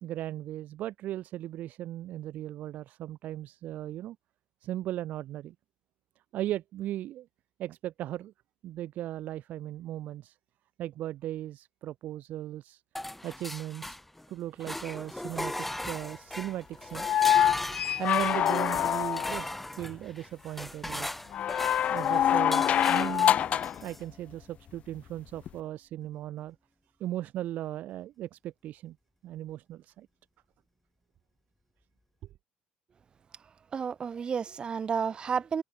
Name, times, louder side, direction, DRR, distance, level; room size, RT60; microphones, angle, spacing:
voice 1, 0.0-4.2 4.6-5.5 6.3-7.3 7.6-8.3 8.6-10.4 10.8-12.8 13.2-14.0 14.3-17.1 18.0-19.5 19.8-21.1 21.9-23.5 23.8-26.6 27.0-29.0 29.2-30.1, right 13 dB, 55° right, 1.3 m, -37 dB
sound 1, 13.0-14.3 14.6-24.0, left 1 dB, 5° left, 2.0 m, -38 dB
sound 2, 17.0-19.5 21.3-23.8 25.5-25.6, left 10 dB, 45° left, 0.4 m, -25 dB
voice 2, 33.7-35.6, right 6 dB, 30° right, 1.1 m, -31 dB
cardioid pair, 140°, 3 cm